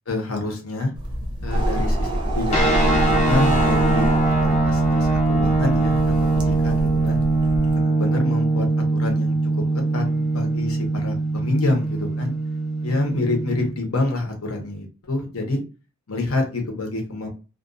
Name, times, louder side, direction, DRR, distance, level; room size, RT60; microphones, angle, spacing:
voice 1, 0.1-0.9 1.4-4.1 4.4-6.0 6.3-7.2 7.7-8.7 8.9-9.4 9.7-12.3 12.8-15.6 16.1-17.3, left 2 dB, 70° left, 2 dB, 0.8 m, -27 dB
sound 1, 1.0-7.8, right 1 dB, 25° right, 0.5 m, -26 dB
sound 2, 2.5-13.7, right 2 dB, 30° left, 0.7 m, -21 dB
2.4 x 2.3 x 2.4 m, 0.32 s
head